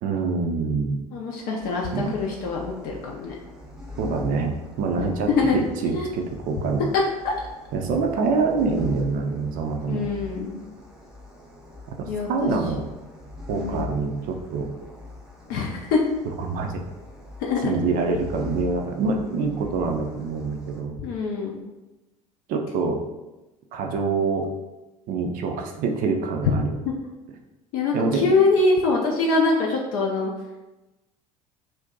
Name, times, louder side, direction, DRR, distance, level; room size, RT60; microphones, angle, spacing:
voice 1, 0.0-1.0 1.9-2.1 4.0-6.8 7.7-10.0 12.0-12.8 13.5-14.7 16.4-16.8 17.6-20.9 22.5-23.0 23.7-24.5 25.1-26.7 27.9-28.3, right 4 dB, 50° right, 3 dB, 0.5 m, -25 dB
voice 2, 1.1-3.3 5.4-5.6 5.8-6.1 7.2-7.3 9.9-10.6 12.1-12.3 13.5-13.9 15.5-16.0 17.4-17.7 21.0-21.6 26.9-27.0 27.7-30.3, left 3 dB, 55° left, -1 dB, 0.5 m, -24 dB
sound 1, 1.6-20.8, left 3 dB, 5° right, 0.7 m, -42 dB
2.6 x 2.1 x 3.6 m, 1.1 s
figure-of-eight pair, 65°, 18 cm